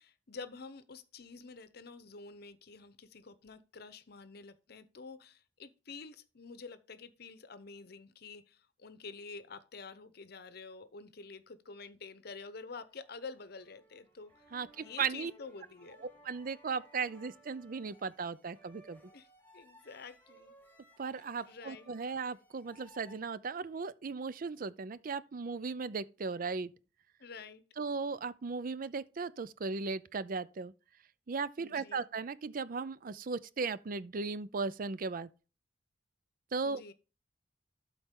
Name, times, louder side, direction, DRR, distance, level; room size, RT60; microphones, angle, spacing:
voice 1, 0.0-14.4 14.8-16.0 19.0-19.3 19.5-20.5 21.4-21.9 27.2-27.6 31.6-32.0 36.6-36.9, left 4 dB, 60° left, 0.8 m, -49 dB
sound 1, 12.8-23.2, equal, 10° left, 2.1 m, -61 dB
voice 2, 14.5-15.3 16.2-19.0 21.0-26.7 27.8-30.7 31.3-35.3 36.5-36.9, right 4 dB, 50° right, 0.5 m, -37 dB
12.5 x 4.3 x 3.7 m
head